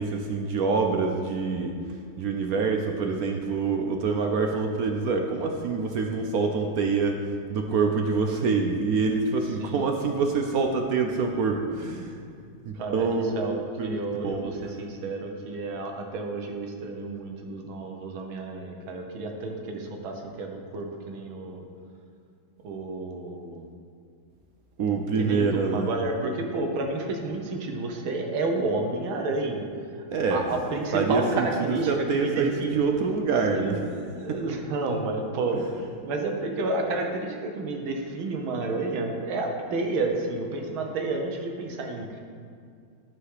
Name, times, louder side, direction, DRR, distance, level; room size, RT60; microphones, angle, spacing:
voice 1, 0.0-1.8 2.2-7.2 7.5-12.2 12.6-13.4 13.8-14.0 14.2-14.5 24.8-25.9 30.1-30.4 30.9-33.8 34.3-34.4 35.5-35.6, right 4 dB, 70° right, 3 dB, 0.9 m, -26 dB
voice 2, 12.8-21.6 22.6-23.7 25.1-29.7 30.3-32.8 33.5-35.6 36.0-42.2, right 3 dB, 90° right, 2 dB, 1.8 m, -30 dB
11.0 x 4.9 x 4.8 m, 2.3 s
omnidirectional pair, 2.2 m